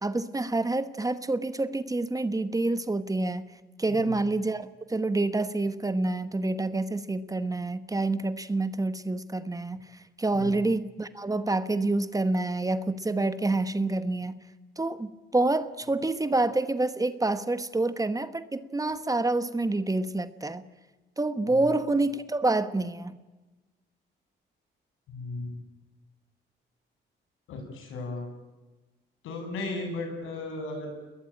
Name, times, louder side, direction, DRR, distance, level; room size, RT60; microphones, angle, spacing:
voice 1, 0.0-3.4 3.8-9.8 10.2-14.4 14.8-20.6 21.2-23.2, right 2 dB, 15° right, 12 dB, 1.2 m, -27 dB
voice 2, 3.9-4.2 10.3-10.6 21.5-21.6 25.1-25.6 27.5-28.3 29.2-30.9, left 2 dB, 90° left, 4 dB, 7.9 m, -36 dB
29.5 x 21.0 x 8.9 m, 1.2 s
cardioid pair, 90°, 20 cm